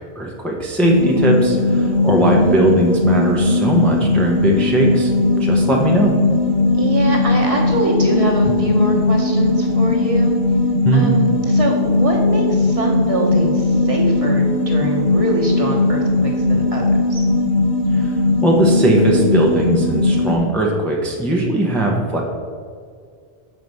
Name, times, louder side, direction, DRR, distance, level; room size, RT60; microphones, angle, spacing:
voice 1, 0.2-5.1 5.4-6.1 10.8-11.1 17.9-22.2, right 1 dB, ahead, -1 dB, 0.7 m, -19 dB
sound 1, 0.8-20.4, left 2 dB, 55° left, 1.8 m, -18 dB
voice 2, 2.2-2.7 6.8-10.3 10.9-17.3, right 1 dB, 35° right, -2 dB, 1.2 m, -23 dB
6.5 x 4.6 x 5.4 m, 2.2 s
omnidirectional pair, 1.1 m